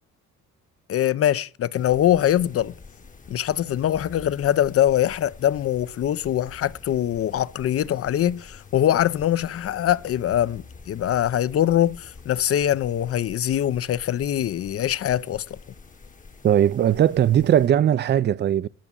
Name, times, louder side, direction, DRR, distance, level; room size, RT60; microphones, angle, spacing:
voice 1, 0.9-2.7 3.3-15.4, left 11 dB, 50° left, 0.6 m, -23 dB
sound 1, 1.7-17.7, left 4 dB, 25° left, 1.0 m, -47 dB
voice 2, 16.4-18.7, right 10 dB, 35° right, 0.4 m, -19 dB
10.0 x 6.0 x 7.1 m
cardioid pair, 90°, 30 cm